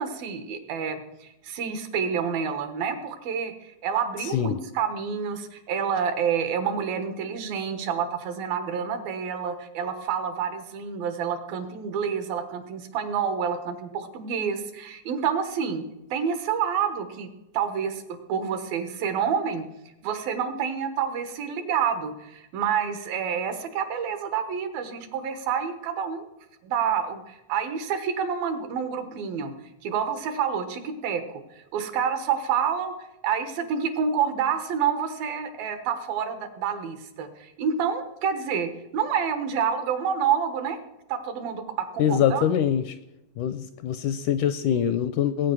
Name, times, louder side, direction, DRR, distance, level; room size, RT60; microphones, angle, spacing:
voice 1, 0.0-15.8 16.1-17.3 17.5-19.6 20.0-26.3 26.6-29.5 29.8-31.4 31.7-32.9 33.2-40.8 41.1-42.5, right 7 dB, 85° right, 8 dB, 3.2 m, -28 dB
voice 2, 4.2-4.6 42.0-43.0 43.4-45.5, left 9 dB, 80° left, 12 dB, 1.8 m, -24 dB
19.0 x 9.0 x 6.1 m, 0.92 s
omnidirectional pair, 4.1 m